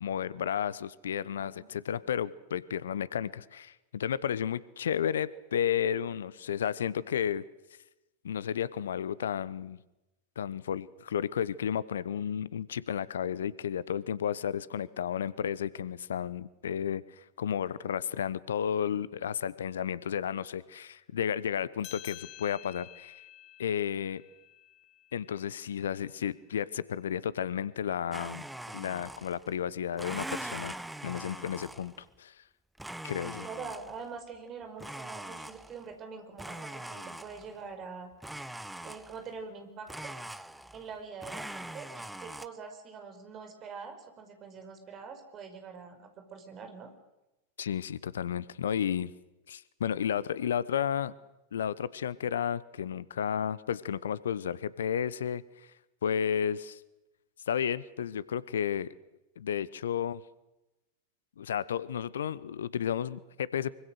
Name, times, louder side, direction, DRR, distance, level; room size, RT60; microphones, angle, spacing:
voice 1, 0.0-7.4 8.2-9.8 10.4-23.1 23.6-24.2 25.1-28.5 28.7-30.7 31.0-31.9 32.2-32.4 33.0-33.5 47.6-49.1 49.5-51.1 51.5-55.7 56.0-56.8 57.5-58.9 59.4-60.2 61.4-63.7, left 9 dB, 65° left, 20 dB, 0.8 m, -32 dB
sound 1, 21.8-26.7, left 15 dB, 40° left, 1.3 m, -51 dB
Domestic sounds home sounds, 28.1-29.5 29.9-32.1 32.8-34.1 34.8-35.9 36.4-37.6 38.2-39.3 39.9-40.9 41.2-42.5, right 1 dB, 5° right, 0.9 m, -42 dB
voice 2, 33.2-38.1 38.8-40.1 40.7-46.9, right 5 dB, 30° right, 6 dB, 5.2 m, -44 dB
25.0 x 24.0 x 6.5 m, 0.96 s
figure-of-eight pair, 90°, 0 cm